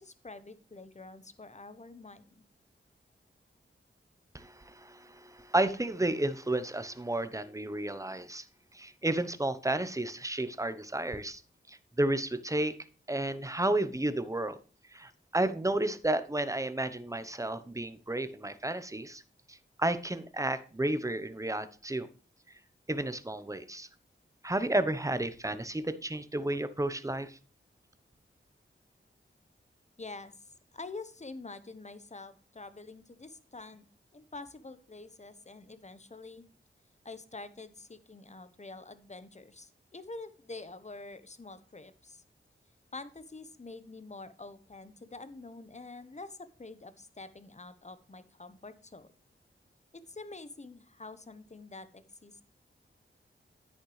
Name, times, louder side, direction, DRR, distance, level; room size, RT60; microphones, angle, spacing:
voice 1, 0.0-2.4 30.0-33.9 34.1-36.4 37.0-42.2 42.9-49.1 50.1-52.4, left 3 dB, 35° left, 13 dB, 1.1 m, -47 dB
voice 2, 4.3-8.4 8.7-11.4 11.7-12.7 13.1-14.6 14.9-19.2 19.5-22.1 22.9-23.9 24.4-27.4, right 1 dB, 15° right, 12 dB, 1.0 m, -32 dB
10.0 x 8.7 x 3.3 m, 0.37 s
cardioid pair, 55°, 21 cm